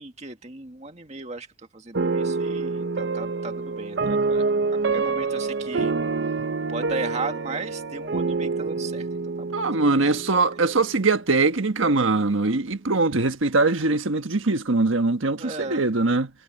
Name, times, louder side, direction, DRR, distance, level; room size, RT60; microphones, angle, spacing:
voice 1, 0.0-1.5 1.7-4.4 4.9-5.9 6.7-9.1 9.4-9.6 10.0-10.2 15.4-15.8, right 3 dB, 35° right, 2.0 m, -35 dB
sound 1, 1.9-11.1, right 4 dB, 60° right, 0.6 m, -27 dB
voice 2, 9.5-16.3, right 3 dB, 90° right, 1.4 m, -22 dB
head